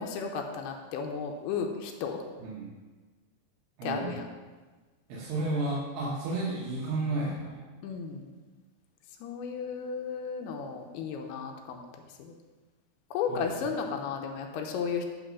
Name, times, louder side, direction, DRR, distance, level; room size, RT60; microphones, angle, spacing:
voice 1, 0.0-2.2 3.8-4.3 7.8-8.3 9.2-11.8 12.2-12.3 13.1-15.1, left 6 dB, 85° left, 3 dB, 2.7 m, -34 dB
voice 2, 3.8-4.2 5.1-7.6 13.3-13.5, right 2 dB, 80° right, -5 dB, 3.1 m, -32 dB
10.5 x 3.9 x 6.1 m, 1.3 s
omnidirectional pair, 4.6 m